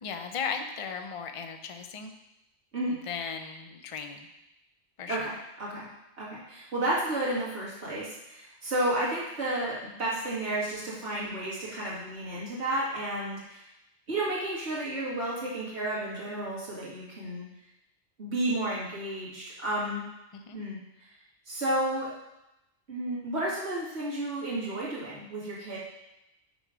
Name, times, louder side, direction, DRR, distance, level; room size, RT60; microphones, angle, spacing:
voice 1, 0.0-2.1 3.1-4.3 5.0-5.3 20.3-20.6, left 6 dB, 40° left, 6 dB, 0.6 m, -36 dB
voice 2, 5.1-5.9 6.2-13.6 14.1-17.5 18.2-20.0 20.5-20.8 21.5-22.1 22.9-25.8, right 1 dB, 75° right, -7 dB, 2.5 m, -32 dB
10.0 x 3.4 x 5.0 m, 0.90 s
omnidirectional pair, 1.2 m